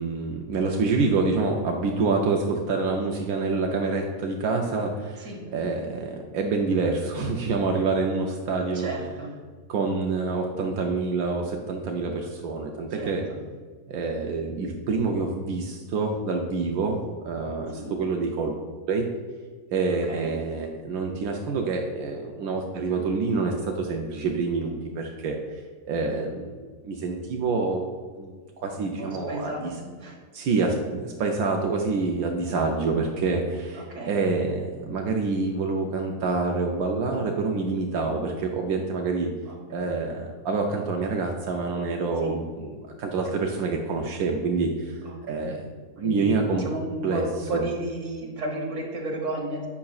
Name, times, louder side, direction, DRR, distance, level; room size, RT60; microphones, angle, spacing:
voice 1, 0.0-5.3 5.5-8.9 9.7-13.2 13.9-17.0 17.2-18.5 18.9-19.1 19.7-25.6 25.9-26.6 26.8-27.8 28.1-28.3 28.6-29.7 30.3-39.3 39.7-45.0 45.3-45.6 46.0-46.7 47.0-47.2 47.5-47.6, right 4 dB, 85° right, 1 dB, 1.1 m, -27 dB
voice 2, 8.7-9.3 12.9-13.4 17.7-17.9 20.1-20.3 28.7-30.2 33.7-34.2 39.5-40.0 42.2-42.3 45.0-45.6 46.0-49.7, right 1 dB, 55° right, -2 dB, 1.7 m, -33 dB
8.5 x 5.7 x 2.3 m, 1.5 s
omnidirectional pair, 1.5 m